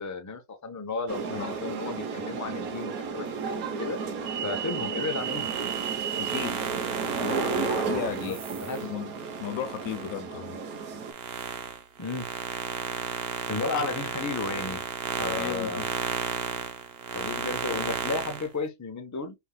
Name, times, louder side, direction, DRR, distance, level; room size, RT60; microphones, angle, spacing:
voice 1, 0.0-4.0 4.4-5.5 8.1-8.9 12.0-12.3 13.5-14.8 15.2-15.8 17.1-19.4, left 4 dB, 20° left, 0.6 m, -33 dB
sound 1, 1.1-11.1, right 6 dB, 85° right, 1.4 m, -32 dB
sound 2, 5.1-10.2 10.6-18.5, right 7 dB, 55° right, 0.8 m, -34 dB
voice 2, 6.2-6.7 7.2-8.4 8.8-9.1 9.4-10.6 15.3-15.9, left 10 dB, 80° left, 1.1 m, -35 dB
5.5 x 3.3 x 2.2 m
omnidirectional pair, 1.5 m